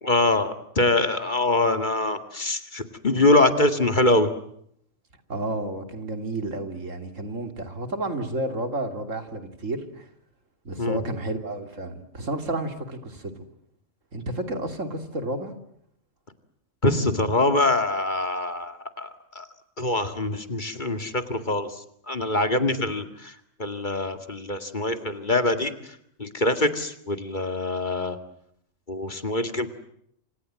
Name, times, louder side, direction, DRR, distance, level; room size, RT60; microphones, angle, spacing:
voice 1, 0.0-4.3 10.8-11.0 16.8-19.1 19.4-19.5 19.8-23.3 23.6-28.2 28.9-29.7, left 2 dB, 40° left, 9 dB, 2.3 m, -24 dB
voice 2, 5.3-10.1 10.6-13.3 14.1-15.5, right 1 dB, 80° right, 7 dB, 3.4 m, -31 dB
28.0 x 27.0 x 7.6 m, 0.71 s
omnidirectional pair, 1.3 m